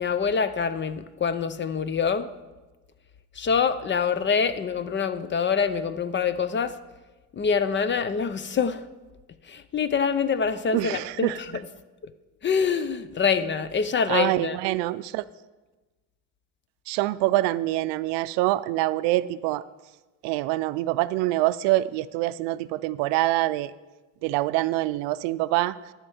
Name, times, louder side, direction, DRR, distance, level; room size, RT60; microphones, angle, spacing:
voice 1, 0.0-2.3 3.4-6.8 7.3-8.8 9.5-11.6 12.0-12.1 12.4-14.6, left 6 dB, 25° left, 13 dB, 0.5 m, -25 dB
voice 2, 10.7-11.4 14.1-15.2 16.9-19.6 20.2-23.7 24.2-25.8, right 17 dB, 80° right, 16 dB, 0.5 m, -25 dB
13.0 x 4.5 x 7.1 m, 1.2 s
supercardioid pair, 95°, 42 cm